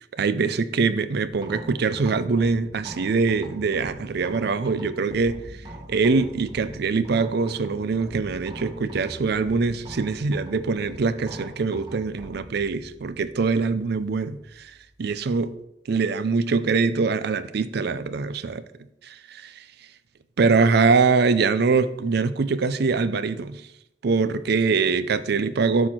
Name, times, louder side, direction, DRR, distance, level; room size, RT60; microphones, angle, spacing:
voice 1, 0.1-5.4 5.9-14.7 15.0-15.5 15.9-18.6 19.0-19.6 20.4-23.6 24.0-25.9, right 4 dB, 60° right, 0.5 m, -23 dB
sound 1, 1.3-15.6, right 1 dB, 25° right, 1.2 m, -43 dB
12.0 x 4.5 x 4.3 m
head